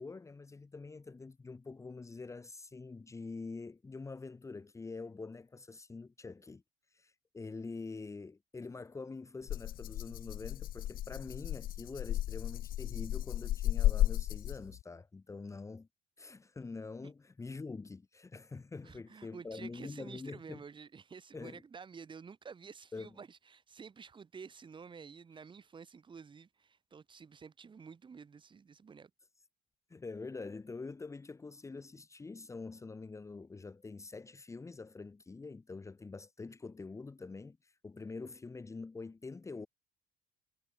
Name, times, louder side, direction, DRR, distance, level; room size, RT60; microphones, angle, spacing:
voice 1, 0.0-6.6 6.9-15.9 16.2-20.6 21.3-21.6 22.9-23.2 29.9-39.7, left 4 dB, 15° left, 2.1 m, -45 dB
Rattle (instrument), 9.5-14.8, left 14 dB, 55° left, 0.8 m, -34 dB
voice 2, 18.8-29.1, right 6 dB, 30° right, 5.7 m, -51 dB
cardioid pair, 135°, 17 cm